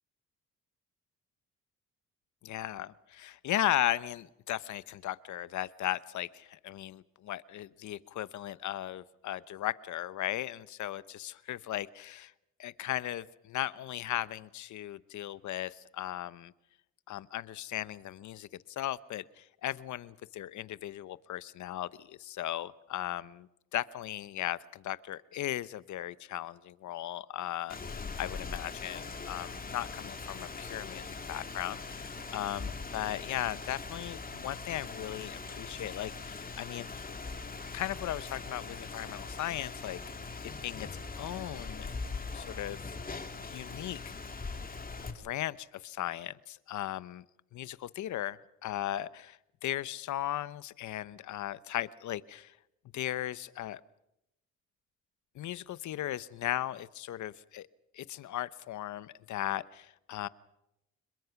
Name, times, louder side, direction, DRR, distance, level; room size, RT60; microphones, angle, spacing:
voice 1, 2.4-12.3 12.6-16.5 17.1-36.9 37.7-40.0 40.4-41.9 42.3-42.8 43.5-44.1 45.1-47.2 47.5-52.6 52.9-53.8 55.3-57.7 57.9-60.3, left 13 dB, 70° left, 17 dB, 1.0 m, -37 dB
Rain, 27.7-45.1, left 4 dB, 30° left, 2.8 m, -41 dB
27.0 x 22.0 x 5.9 m, 0.86 s
cardioid pair, 90°, 30 cm